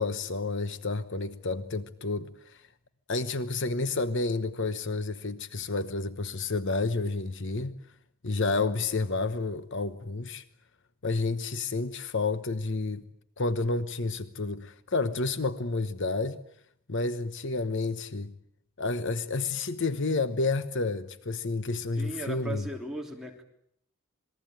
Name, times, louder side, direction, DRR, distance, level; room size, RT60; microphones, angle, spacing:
voice 1, 0.0-2.6 3.1-7.8 8.2-10.4 11.0-13.0 13.4-16.4 16.9-18.3 18.8-22.6, left 3 dB, 55° left, 1.0 m, -30 dB
voice 2, 21.9-23.4, right 1 dB, ahead, 3.3 m, -37 dB
27.0 x 20.5 x 9.0 m
head